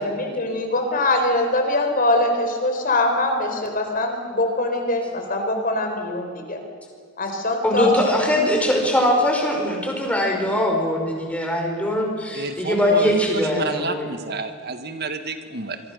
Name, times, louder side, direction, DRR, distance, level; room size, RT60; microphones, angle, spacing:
voice 1, 0.0-6.6 7.2-8.2, left 2 dB, 45° left, 4 dB, 4.2 m, -23 dB
voice 2, 7.6-14.0, left 1 dB, 5° left, 0 dB, 5.4 m, -21 dB
voice 3, 12.3-15.8, right 3 dB, 50° right, 8 dB, 1.5 m, -30 dB
26.5 x 23.5 x 6.6 m, 2.2 s
head